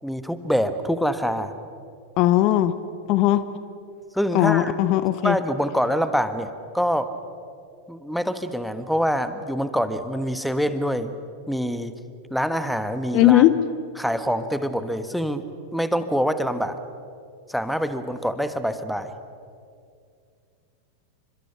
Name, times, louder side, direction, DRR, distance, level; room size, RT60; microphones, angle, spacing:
voice 1, 0.0-1.5 4.1-4.7 5.2-7.1 7.9-11.1 11.5-12.0 12.3-13.4 14.0-15.4 15.7-16.8 17.5-19.1, equal, ahead, 11 dB, 1.4 m, -25 dB
voice 2, 2.2-2.7 3.1-3.4 4.3-5.4 13.1-13.5, left 14 dB, 40° left, 14 dB, 1.0 m, -18 dB
29.5 x 25.5 x 6.0 m, 2.4 s
figure-of-eight pair, 90°, 0 cm